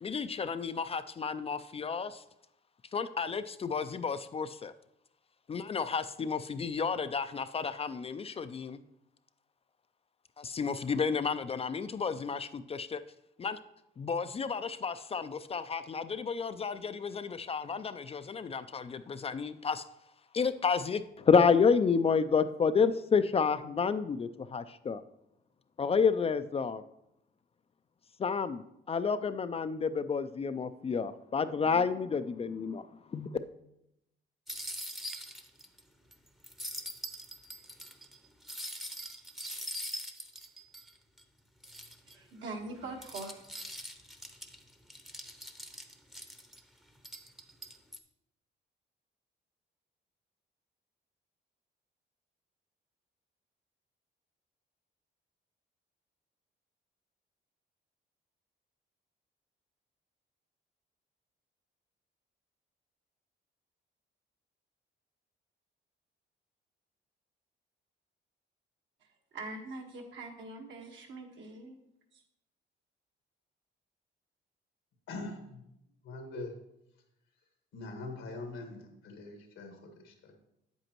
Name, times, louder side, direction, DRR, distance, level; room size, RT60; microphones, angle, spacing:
voice 1, 0.0-2.2 2.9-4.7 5.5-8.8 10.4-13.0 13.4-13.6 14.0-19.8 20.3-25.0 25.8-26.8 28.2-28.6 28.9-33.3, left 5 dB, 30° left, 12 dB, 0.4 m, -30 dB
sound 1, 34.5-35.8 36.1-36.2 36.4-41.2 41.6-42.2 42.7-46.6 47.0-48.0, equal, ahead, 0.7 m, -43 dB
voice 2, 42.1-43.6 69.0-71.8 72.1-72.2, right 2 dB, 70° right, 2 dB, 1.5 m, -43 dB
voice 3, 75.1-75.6 76.0-76.5 77.7-80.3, left 2 dB, 85° left, 4 dB, 1.5 m, -43 dB
8.3 x 7.9 x 3.0 m, 0.83 s
cardioid pair, 90°, 20 cm